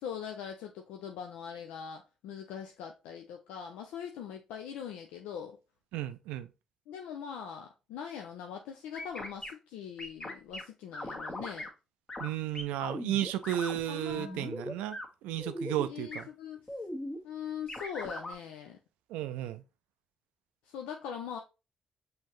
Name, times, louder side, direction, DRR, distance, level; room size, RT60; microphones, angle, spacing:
voice 1, 0.0-5.6 6.9-11.7 13.9-14.5 15.9-16.7 17.2-18.8 20.6-21.4, left 8 dB, 90° left, 0.4 m, -42 dB
voice 2, 5.9-6.5 12.2-16.2 19.1-19.6, right 12 dB, 90° right, 0.3 m, -34 dB
sound 1, 8.9-9.5 10.0-10.6 10.9-11.7 12.1-12.3 12.5-13.8 14.1-15.1 15.4-15.9 16.1-16.2 16.7-17.2 17.7-18.3, left 1 dB, 30° left, 1.3 m, -39 dB
5.5 x 2.8 x 3.1 m
supercardioid pair, 50°, 2 cm